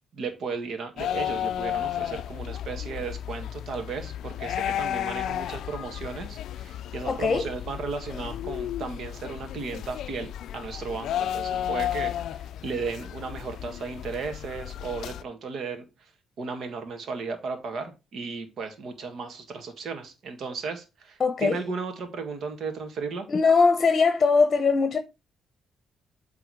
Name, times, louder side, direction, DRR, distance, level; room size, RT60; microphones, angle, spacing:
voice 1, 0.1-15.8 16.4-23.3, right 4 dB, 60° right, 1.8 m, -35 dB
sound 1, 1.0-15.2, left 11 dB, 75° left, 0.3 m, -33 dB
voice 2, 7.1-7.5 21.2-21.6 23.3-25.0, left 4 dB, 40° left, 0.9 m, -21 dB
8.1 x 3.6 x 4.7 m
cardioid pair, 90°, 0 cm